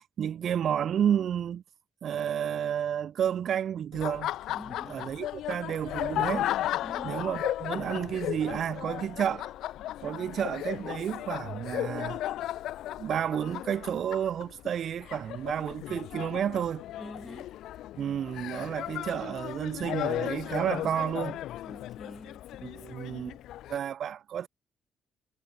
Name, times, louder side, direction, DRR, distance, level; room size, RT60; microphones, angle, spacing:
voice 1, 0.0-1.6 2.0-4.3 4.9-6.5 7.0-9.5 10.0-12.2 13.0-16.8 18.0-21.4 22.6-23.4 23.7-24.5, right 9 dB, 60° right, 2.3 m, -31 dB
Laughter, 3.9-23.8, left 13 dB, 80° left, 0.7 m, -35 dB
voice 2, 4.5-5.0 6.8-7.2 17.0-17.5 21.6-22.5, equal, 5° left, 5.7 m, -46 dB
cardioid pair, 80°, 0 cm